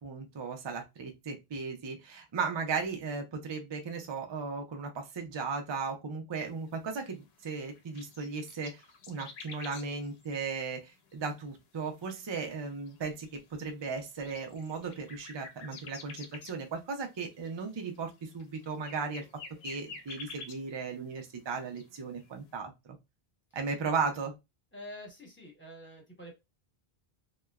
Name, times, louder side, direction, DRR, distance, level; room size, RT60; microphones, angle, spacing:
voice 1, 0.0-8.8 9.1-19.2 19.6-22.7 23.5-24.3, right 5 dB, 35° right, 3 dB, 0.4 m, -36 dB
sound 1, 6.5-21.1 21.4-22.3, left 4 dB, 80° left, 0.8 m, -50 dB
voice 2, 24.7-26.4, left 1 dB, 10° left, -1 dB, 1.0 m, -47 dB
2.9 x 2.1 x 2.3 m, 0.22 s
omnidirectional pair, 1.0 m